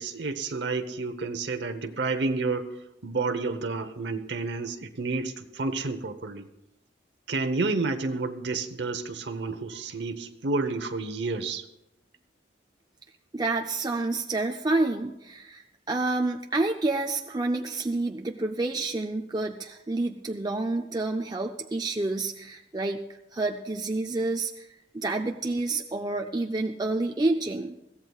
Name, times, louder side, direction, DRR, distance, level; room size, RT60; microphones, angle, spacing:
voice 1, 0.0-2.7 3.0-6.5 7.3-11.6, right 3 dB, 70° right, 6 dB, 0.9 m, -30 dB
voice 2, 13.3-23.0 23.3-24.7 24.9-27.8, right 2 dB, 20° right, 2 dB, 0.5 m, -29 dB
21.5 x 15.5 x 2.4 m, 0.93 s
head